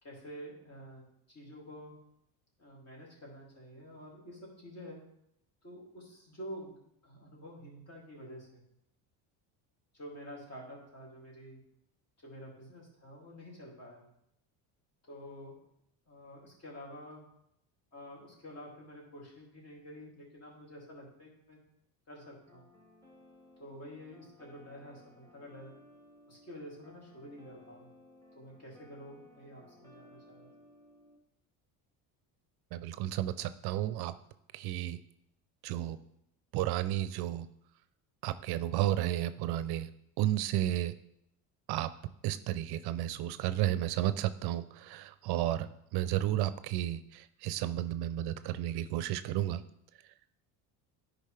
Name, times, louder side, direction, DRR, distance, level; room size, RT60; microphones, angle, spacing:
voice 1, 0.0-2.0 2.6-5.0 5.6-8.6 9.9-11.6 12.2-14.1 15.0-15.6 16.1-17.2 17.9-21.6 22.1-22.7 23.6-25.8 26.3-27.9 28.3-30.5, equal, 40° left, -3 dB, 2.8 m, -49 dB
sound 1, 22.5-31.2, left 1 dB, 10° left, 1.8 m, -59 dB
voice 2, 32.7-34.1 34.5-35.0 35.6-36.0 36.5-37.5 38.2-39.9 40.2-40.9 41.7-41.9 42.2-45.7 45.9-49.6, right 13 dB, 65° right, 13 dB, 0.5 m, -32 dB
10.0 x 5.0 x 3.3 m, 0.76 s
cardioid pair, 115°, 41 cm